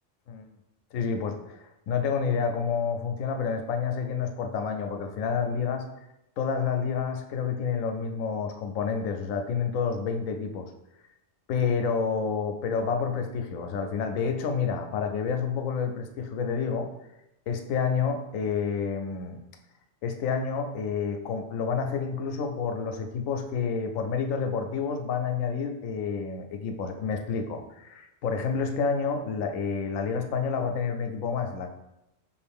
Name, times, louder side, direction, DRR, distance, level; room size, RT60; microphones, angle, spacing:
voice 1, 0.9-5.8 6.4-10.7 11.5-16.9 17.5-19.4 20.0-31.7, left 6 dB, 90° left, 5 dB, 1.0 m, -29 dB
5.2 x 2.6 x 3.4 m, 0.89 s
omnidirectional pair, 1.3 m